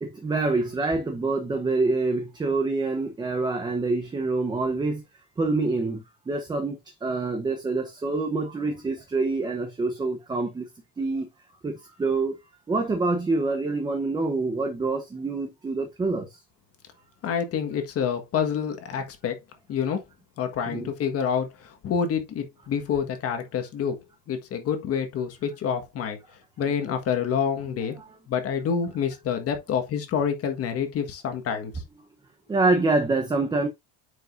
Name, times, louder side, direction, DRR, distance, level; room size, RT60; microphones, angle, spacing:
voice 1, 0.0-5.0 5.4-10.7 11.0-11.3 11.6-12.3 12.7-16.3 20.7-20.9 28.0-28.1 32.5-33.7, right 3 dB, 10° right, 0.8 m, -26 dB
voice 2, 17.2-19.4 19.7-20.0 20.4-24.0 24.3-26.2 26.6-28.0 28.3-31.7, left 7 dB, 35° left, 1.6 m, -27 dB
9.4 x 5.3 x 2.6 m
cardioid pair, 180°, 41 cm